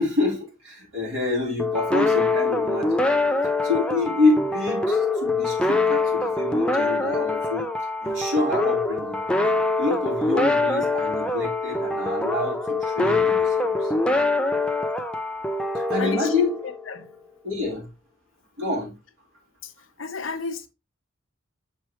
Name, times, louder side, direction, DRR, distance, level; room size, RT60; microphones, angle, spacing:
voice 1, 0.0-3.0 3.6-7.7 8.0-9.2 9.5-13.9 15.7-16.6 17.4-17.9 18.6-18.9, left 3 dB, 70° right, 3.4 m, -27 dB
sound 1, 1.6-17.0, left 3 dB, 5° left, 0.5 m, -24 dB
voice 2, 13.1-13.5 16.0-16.4 16.9-17.1 19.6-19.7 20.0-20.7, left 4 dB, 75° left, 0.9 m, -32 dB
7.2 x 4.7 x 3.0 m
head